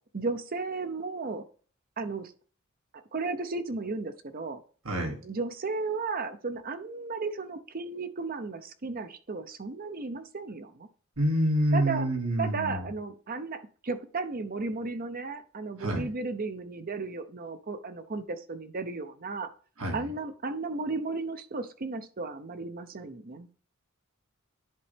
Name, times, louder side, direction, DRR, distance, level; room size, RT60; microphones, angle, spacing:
voice 1, 0.1-1.5 2.0-2.3 3.1-4.6 5.2-10.9 11.7-12.1 12.4-19.5 19.9-23.5, right 3 dB, 45° right, 10 dB, 0.7 m, -34 dB
voice 2, 4.8-5.2 11.2-12.9 15.8-16.1 19.8-20.1, right 1 dB, 85° right, 1 dB, 2.2 m, -27 dB
10.5 x 4.2 x 3.4 m, 0.41 s
head